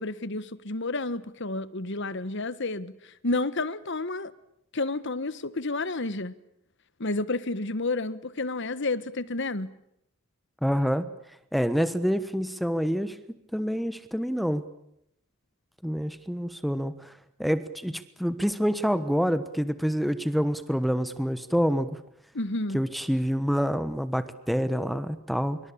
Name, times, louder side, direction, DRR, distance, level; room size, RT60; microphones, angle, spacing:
voice 1, 0.0-2.9 3.2-4.3 4.7-6.3 7.0-9.7 22.3-22.8, left 2 dB, 60° left, 1.4 m, -30 dB
voice 2, 10.6-11.1 11.5-13.2 13.5-14.6 15.8-17.1 17.4-22.0 22.7-25.6, equal, ahead, 1.2 m, -27 dB
26.0 x 24.0 x 8.7 m
head